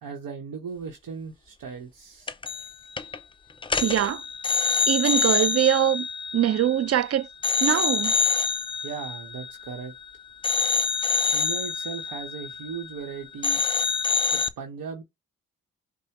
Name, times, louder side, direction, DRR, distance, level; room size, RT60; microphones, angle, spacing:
voice 1, 0.0-2.3 8.8-9.9 11.3-13.6 14.3-15.0, right 6 dB, 65° right, 0.9 m, -37 dB
sound 1, 2.3-2.7 3.0-3.2 3.6-7.0 7.4-10.0 10.4-13.1 13.4-14.5, left 5 dB, 15° left, 0.3 m, -26 dB
voice 2, 3.8-4.2 4.9-6.1 6.3-7.3 7.6-8.1, right 10 dB, 45° right, 0.5 m, -22 dB
5.4 x 2.1 x 2.9 m
supercardioid pair, 60°, 35 cm